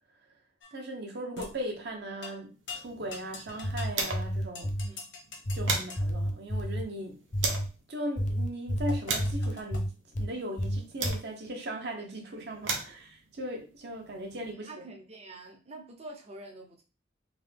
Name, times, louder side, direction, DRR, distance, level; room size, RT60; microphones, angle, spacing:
sound 1, 0.6-0.8 1.4-1.6 2.2-2.4 2.7-4.1 4.5-6.0 8.9-9.8, left 4 dB, 80° left, 1.1 m, -43 dB
voice 1, 0.7-4.7 5.5-7.2 7.9-9.9 10.2-14.7, right 1 dB, 60° right, 1.0 m, -38 dB
sound 2, 2.7-4.5 4.8-4.9 5.2-7.8 8.4-11.6 12.3-14.5, right 4 dB, 90° right, 0.8 m, -37 dB
sound 3, 3.5-4.9 5.5-6.9 7.3-7.7 8.2-10.3 10.6-11.2, equal, 45° left, 0.7 m, -30 dB
voice 2, 14.6-16.8, right 2 dB, 35° right, 0.7 m, -46 dB
3.7 x 2.8 x 3.4 m
head